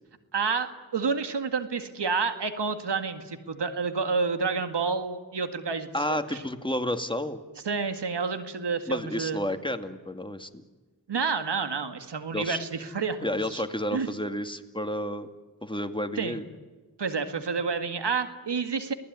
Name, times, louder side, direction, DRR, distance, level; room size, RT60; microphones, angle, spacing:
voice 1, 0.3-6.4 7.6-9.4 11.1-13.6 13.9-14.1 16.2-16.4 17.0-18.9, right 5 dB, 90° right, 8 dB, 2.0 m, -29 dB
voice 2, 5.9-7.4 8.9-10.6 12.3-12.6 13.2-15.3 15.6-16.4, left 1 dB, 10° left, 7 dB, 2.3 m, -31 dB
29.5 x 19.5 x 9.7 m, 1.3 s
cardioid pair, 45°, 40 cm